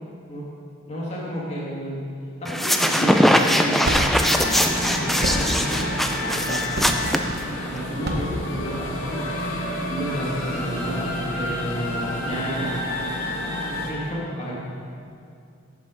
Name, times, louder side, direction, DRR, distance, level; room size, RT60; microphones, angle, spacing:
voice 1, 0.9-2.1 2.4-14.5, equal, 30° left, -6 dB, 1.9 m, -32 dB
sound 1, 2.5-7.8, equal, ahead, 0.3 m, -21 dB
sound 2, 3.8-9.2, right 1 dB, 50° right, 0.9 m, -30 dB
sound 3, 4.1-13.9, left 1 dB, 85° left, 1.6 m, -29 dB
7.9 x 7.6 x 5.0 m, 2.4 s
head